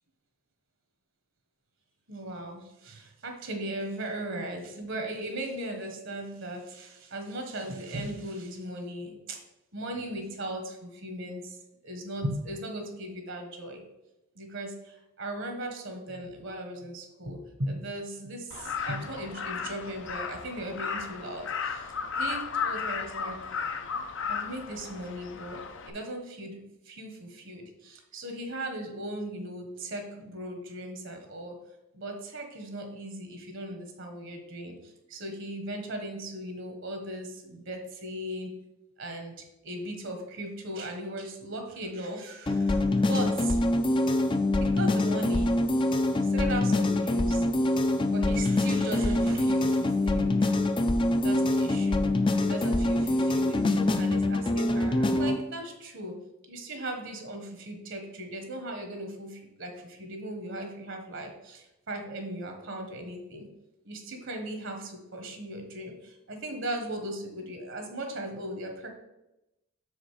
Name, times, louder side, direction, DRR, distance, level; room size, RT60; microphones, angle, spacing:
voice 1, 2.1-9.4 9.7-13.8 14.3-23.6 23.8-31.6 31.9-38.5 39.0-43.6 44.6-45.5 46.3-47.4 47.7-50.3 51.2-52.1 52.4-53.6 54.0-56.2 56.5-63.5 63.8-68.9, right 1 dB, 65° right, 4 dB, 1.2 m, -38 dB
Crow, 18.5-25.9, left 6 dB, 60° left, 0.7 m, -34 dB
sound 1, 42.5-55.4, left 2 dB, 25° left, 0.5 m, -25 dB
6.2 x 5.0 x 4.8 m, 0.92 s
head